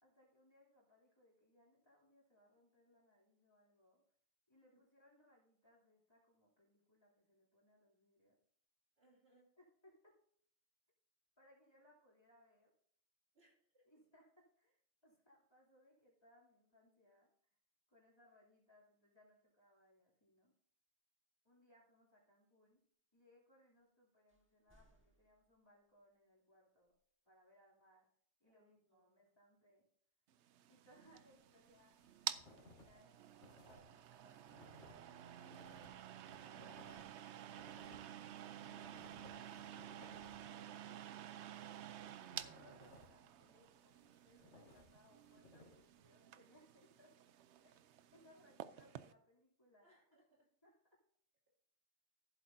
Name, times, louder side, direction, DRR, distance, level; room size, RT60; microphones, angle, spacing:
voice 1, 0.0-4.0 4.5-8.4 9.6-10.2 11.4-12.7 13.8-17.3 17.9-20.5 21.4-22.8 23.1-26.9 27.2-28.1 28.4-29.9 30.7-32.2 32.5-35.7 36.3-47.2 47.6-50.0 50.6-51.0, left 1 dB, 20° left, -5 dB, 2.9 m, -70 dB
voice 2, 9.0-9.5 13.3-13.8 28.5-29.1 49.8-50.5, right 1 dB, 60° right, -2 dB, 2.9 m, -73 dB
sound 1, 24.3-25.9 26.8-26.9, right 1 dB, 10° right, 1.5 m, -73 dB
sound 2, 30.4-49.1, right 10 dB, 80° right, 0.9 m, -52 dB
sound 3, 31.6-32.9 33.2-40.5 41.3-43.2 43.8-46.0, left 1 dB, 85° left, 2.4 m, -63 dB
14.5 x 8.0 x 2.7 m, 0.63 s
omnidirectional pair, 1.2 m